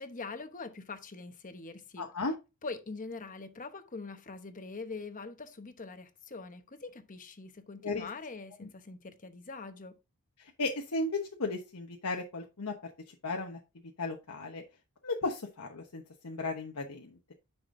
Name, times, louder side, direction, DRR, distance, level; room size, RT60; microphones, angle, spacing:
voice 1, 0.0-2.1 2.6-10.0, left 3 dB, 35° left, 0.9 m, -43 dB
voice 2, 2.0-2.3 7.8-8.1 8.6-8.7 10.6-12.7 13.1-13.6 14.0-14.6 15.0-17.3, left 3 dB, 80° left, 1.0 m, -35 dB
9.8 x 5.9 x 2.6 m
head